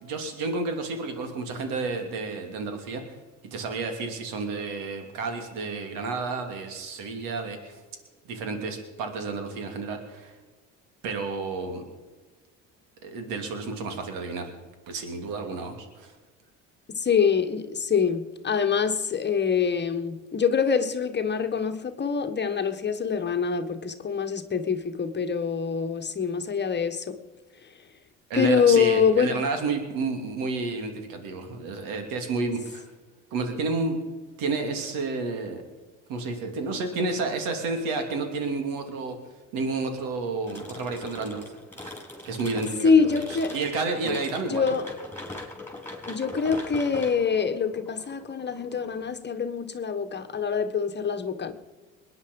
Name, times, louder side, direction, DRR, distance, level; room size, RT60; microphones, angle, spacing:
voice 1, 0.0-3.2 3.5-7.8 8.2-10.4 11.0-11.8 13.0-14.5 14.9-16.1 28.3-32.9 33.3-34.0 34.4-35.6 36.1-39.1 39.5-41.5 41.8-42.0 42.2-44.6, right 3 dB, 80° right, 2.8 m, -31 dB
voice 2, 17.0-27.2 28.3-29.4 42.8-43.6 44.5-44.8 46.1-51.5, left 6 dB, 30° left, 1.4 m, -25 dB
sound 1, 40.5-49.1, left 2 dB, 5° left, 5.0 m, -41 dB
21.5 x 9.9 x 5.4 m
supercardioid pair, 85°, 33 cm